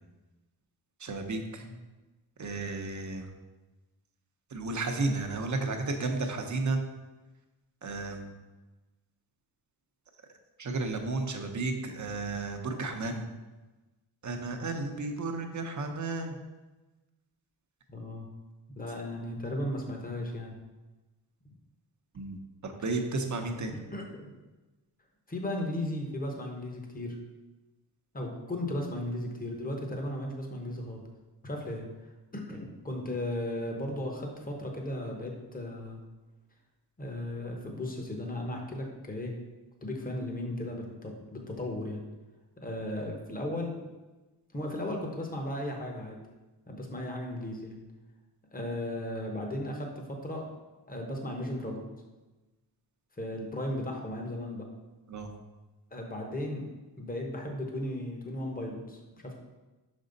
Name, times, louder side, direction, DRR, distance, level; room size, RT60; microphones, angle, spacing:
voice 1, 1.0-1.6 2.4-3.3 4.5-6.8 7.8-8.3 10.6-13.3 14.2-16.4 22.1-23.8 55.1-55.3, right 3 dB, 45° right, 4 dB, 0.8 m, -33 dB
voice 2, 17.9-18.3 18.8-20.5 21.4-21.5 23.9-24.4 25.3-27.2 28.1-31.0 31.4-36.0 37.0-39.4 39.8-42.0 42.6-43.7 44.5-46.2 46.7-47.8 48.5-50.4 50.9-51.9 53.1-54.7 55.9-56.7 57.0-59.4, left 1 dB, 20° left, 1 dB, 1.0 m, -36 dB
6.1 x 5.3 x 3.9 m, 1.1 s
wide cardioid pair, 130°, 41 cm